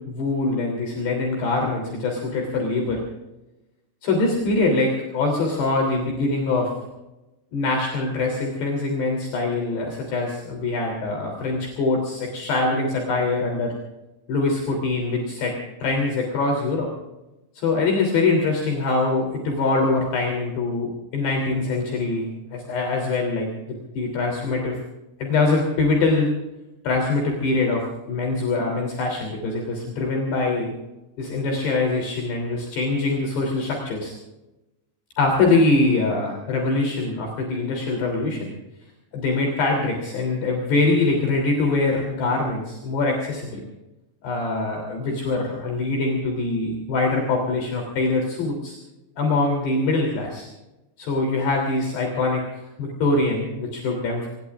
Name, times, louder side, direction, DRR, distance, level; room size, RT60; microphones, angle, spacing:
voice 1, 0.0-3.0 4.0-6.7 7.5-13.7 14.3-15.5 15.8-16.9 17.5-24.8 25.2-26.3 26.8-30.7 31.2-34.1 35.2-38.5 39.1-43.6 44.2-48.8 49.2-50.5 51.0-54.3, left 3 dB, 60° left, 0 dB, 5.0 m, -23 dB
25.5 x 21.5 x 2.4 m, 1.0 s
omnidirectional pair, 5.7 m